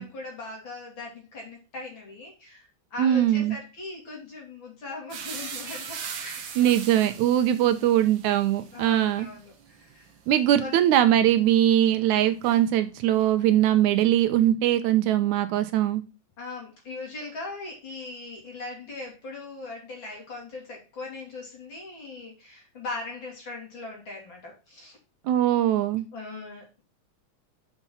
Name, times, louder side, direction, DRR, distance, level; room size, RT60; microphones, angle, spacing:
voice 1, 0.0-7.0 7.4-7.8 8.7-10.1 10.5-10.9 16.4-25.0 26.1-26.8, left 3 dB, 40° left, -2 dB, 3.3 m, -40 dB
voice 2, 3.0-3.6 6.6-9.3 10.3-16.0 25.3-26.1, right 12 dB, 80° right, 10 dB, 2.1 m, -21 dB
sound 1, 5.1-13.1 13.4-14.5, right 6 dB, 60° right, 1.3 m, -41 dB
5.9 x 5.9 x 5.5 m, 0.30 s
omnidirectional pair, 3.4 m